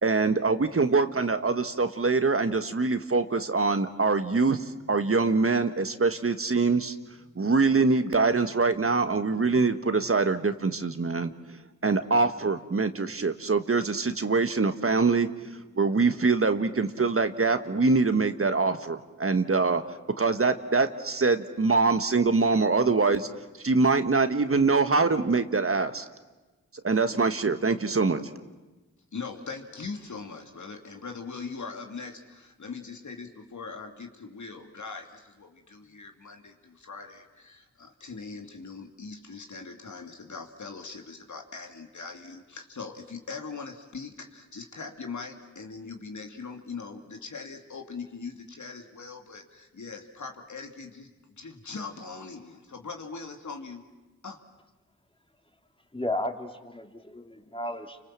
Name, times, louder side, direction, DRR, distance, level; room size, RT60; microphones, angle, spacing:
voice 1, 0.0-6.9 7.4-11.3 11.8-15.3 15.5-19.8 20.2-23.3 23.6-26.0 26.8-28.2, right 4 dB, 45° right, 9 dB, 1.5 m, -24 dB
voice 2, 29.1-51.1 51.4-53.8 54.2-54.4, left 4 dB, 70° left, 4 dB, 2.6 m, -41 dB
voice 3, 55.9-58.0, left 1 dB, 15° left, 5 dB, 3.0 m, -33 dB
29.5 x 25.0 x 7.6 m, 1.2 s
cardioid pair, 40°, 31 cm